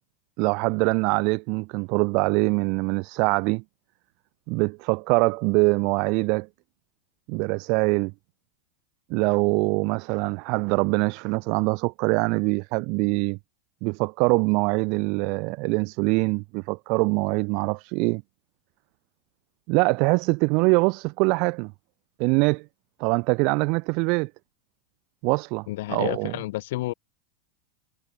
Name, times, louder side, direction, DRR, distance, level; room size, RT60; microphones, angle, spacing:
voice 1, 0.4-3.6 4.5-6.5 7.3-8.1 9.1-13.4 13.8-18.2 19.7-21.7 22.2-22.6 23.0-24.3 25.2-26.4, right 31 dB, 50° right, 2.2 m, -23 dB
voice 2, 25.7-26.9, left 17 dB, 70° left, 3.8 m, -30 dB
supercardioid pair, 140°, 0 cm